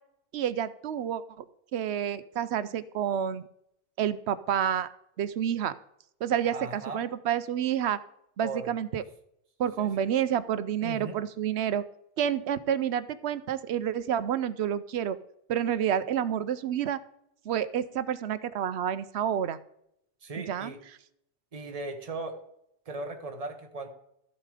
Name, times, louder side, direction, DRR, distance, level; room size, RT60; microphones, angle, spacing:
voice 1, 0.3-1.4 1.7-3.5 4.0-4.9 5.2-5.7 6.2-8.0 8.4-9.0 9.6-11.8 12.2-15.2 15.5-17.0 17.5-19.6 20.4-20.7, right 9 dB, 70° right, 15 dB, 0.9 m, -29 dB
voice 2, 6.4-7.0 8.4-8.8 9.8-10.1 10.8-11.2 20.2-20.8 21.5-22.4 22.8-23.9, right 3 dB, 30° right, 5 dB, 1.2 m, -38 dB
13.5 x 7.2 x 4.9 m, 0.75 s
omnidirectional pair, 1.2 m